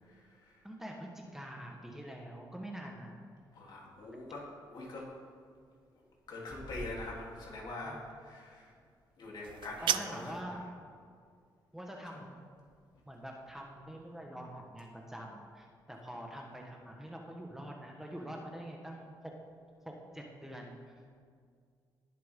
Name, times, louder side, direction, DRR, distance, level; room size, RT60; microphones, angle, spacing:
voice 1, 0.6-3.1 7.8-8.0 9.8-10.6 11.7-12.4 13.1-19.1 19.8-20.7, equal, 5° right, 0 dB, 1.3 m, -45 dB
voice 2, 3.5-4.4 4.7-5.0 6.3-8.0 8.2-8.7 9.2-10.6 12.0-12.2, left 2 dB, 65° left, -4 dB, 3.3 m, -43 dB
sound 1, 9.4-10.4, right 10 dB, 75° right, 0.4 m, -34 dB
19.0 x 7.6 x 3.7 m, 2.1 s
cardioid pair, 100°, 8 cm